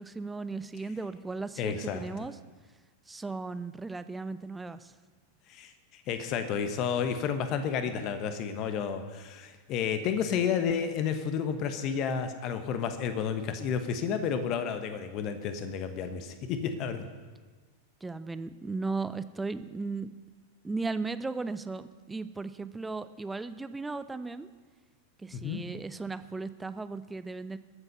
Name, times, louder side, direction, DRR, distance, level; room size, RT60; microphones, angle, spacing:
voice 1, 0.0-2.4 3.1-4.9 18.0-20.1 20.6-24.5 25.2-27.6, right 3 dB, 10° right, 13 dB, 0.6 m, -36 dB
voice 2, 1.6-2.1 5.5-5.7 6.1-17.0 25.3-25.6, left 7 dB, 40° left, 9 dB, 1.3 m, -31 dB
20.5 x 8.0 x 5.6 m, 1.4 s
figure-of-eight pair, 90°, 0 cm